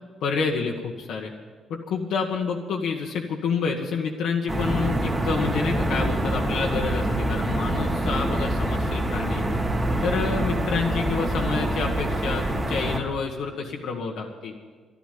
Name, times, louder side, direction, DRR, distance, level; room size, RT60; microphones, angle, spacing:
voice 1, 0.2-1.3 1.7-9.5 10.0-14.5, left 5 dB, 80° left, -1 dB, 1.5 m, -28 dB
sound 1, 4.5-13.0, right 1 dB, 20° right, 2.3 m, -25 dB
12.5 x 11.0 x 9.2 m, 1.5 s
cardioid pair, 120°, 0 cm